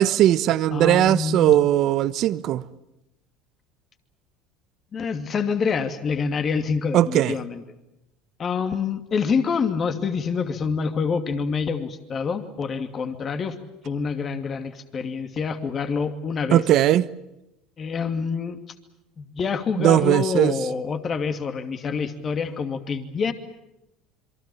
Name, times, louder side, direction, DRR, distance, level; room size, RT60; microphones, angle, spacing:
voice 1, 0.0-2.6 6.9-7.4 16.5-17.1 19.8-20.6, right 12 dB, 55° right, 1.0 m, -19 dB
voice 2, 0.7-1.6 4.9-7.6 8.4-13.6 13.8-16.6 17.8-18.6 19.2-23.3, left 5 dB, 35° left, 2.6 m, -26 dB
27.5 x 23.5 x 7.2 m
supercardioid pair, 90°, 0 cm